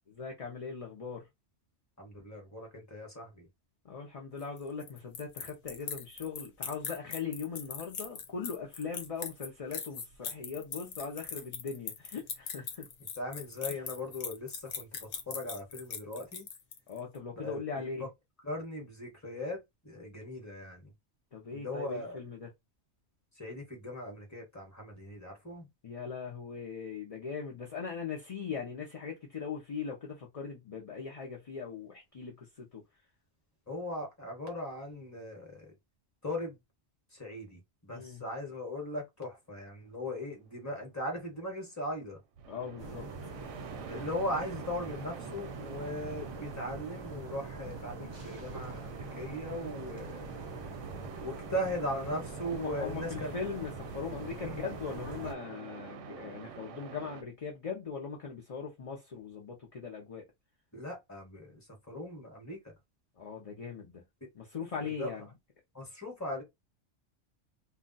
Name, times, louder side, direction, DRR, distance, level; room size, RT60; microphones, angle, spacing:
voice 1, 0.1-1.3 3.8-12.9 16.9-18.1 21.3-22.5 25.8-32.8 37.9-38.2 42.5-43.1 52.4-60.2 63.2-64.0 64.3-65.3, left 5 dB, 40° left, 0.5 m, -40 dB
voice 2, 2.0-3.5 13.2-16.5 17.4-17.8 18.4-20.9 21.5-22.2 23.4-25.7 33.7-35.7 36.2-36.6 37.2-42.2 43.9-50.3 51.2-53.3 54.4-54.6 60.7-61.6 61.9-62.7 64.8-65.1 65.7-66.4, left 1 dB, 15° left, 1.0 m, -39 dB
sound 1, 4.4-17.0, left 6 dB, 80° left, 1.0 m, -40 dB
sound 2, 42.4-57.2, right 8 dB, 90° right, 0.9 m, -47 dB
sound 3, 42.8-55.3, right 3 dB, 30° right, 0.6 m, -43 dB
2.3 x 2.2 x 3.8 m
omnidirectional pair, 1.2 m